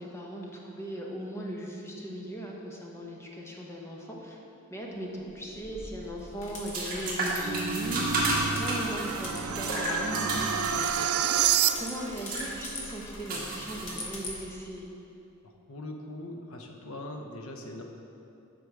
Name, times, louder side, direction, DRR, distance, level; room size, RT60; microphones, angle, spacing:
voice 1, 0.0-4.4 4.7-11.2 11.8-14.9, equal, 15° left, -2 dB, 1.0 m, -38 dB
sound 1, 5.6-14.4, right 2 dB, 45° right, 1.6 m, -33 dB
sound 2, 6.4-14.4, left 2 dB, 65° left, 1.3 m, -44 dB
sound 3, 7.0-12.2, right 9 dB, 80° right, 0.4 m, -29 dB
voice 2, 15.4-17.8, left 1 dB, 80° left, 2 dB, 0.9 m, -41 dB
8.2 x 5.5 x 4.8 m, 2.8 s
head